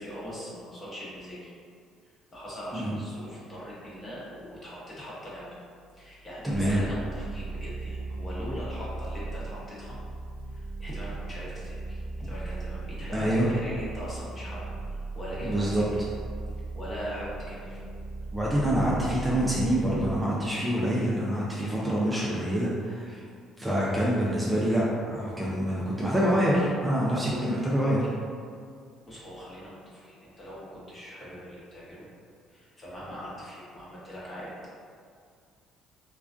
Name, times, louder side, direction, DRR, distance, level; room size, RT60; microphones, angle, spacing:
voice 1, 0.0-1.5 2.3-5.5 5.9-10.0 10.5-16.0 16.7-17.8 29.0-32.1 32.5-34.5, equal, 30° left, -7 dB, 0.8 m, -41 dB
voice 2, 6.4-6.8 13.1-13.5 15.4-15.8 18.3-23.2 23.6-28.1, equal, 15° right, -6 dB, 0.4 m, -26 dB
sound 1, 6.5-20.2, right 3 dB, 80° left, 0.5 m, -37 dB
2.3 x 2.2 x 2.4 m, 2.2 s
supercardioid pair, 90°, 0 cm